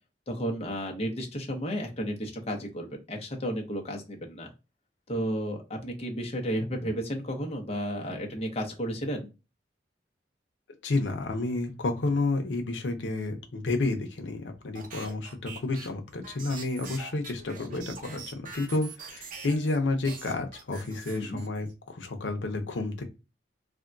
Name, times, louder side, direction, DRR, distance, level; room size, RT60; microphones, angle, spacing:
voice 1, 0.3-4.5 5.1-9.3 21.1-21.4, equal, 35° left, 1 dB, 0.7 m, -33 dB
voice 2, 10.8-23.0, left 2 dB, 90° left, 4 dB, 0.7 m, -30 dB
sound 1, 14.7-19.8 20.0-21.7, right 4 dB, 50° right, 0.8 m, -44 dB
3.4 x 2.2 x 2.5 m, 0.29 s
head